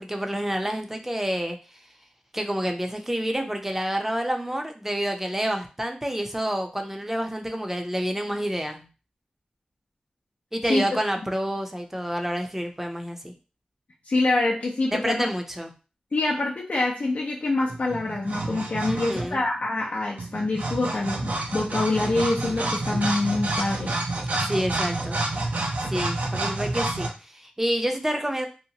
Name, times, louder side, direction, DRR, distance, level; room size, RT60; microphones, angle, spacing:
voice 1, 0.0-1.6 2.3-8.9 10.5-13.3 14.9-15.7 18.8-19.4 24.4-25.2 25.9-28.5, equal, 10° right, 4 dB, 0.6 m, -28 dB
voice 2, 14.1-15.3 16.1-23.9, left 2 dB, 70° left, -3 dB, 0.5 m, -25 dB
sound 1, 17.7-19.5 20.2-27.1, right 2 dB, 70° right, 0.5 m, -29 dB
2.8 x 2.1 x 2.7 m, 0.33 s
cardioid pair, 45°, 3 cm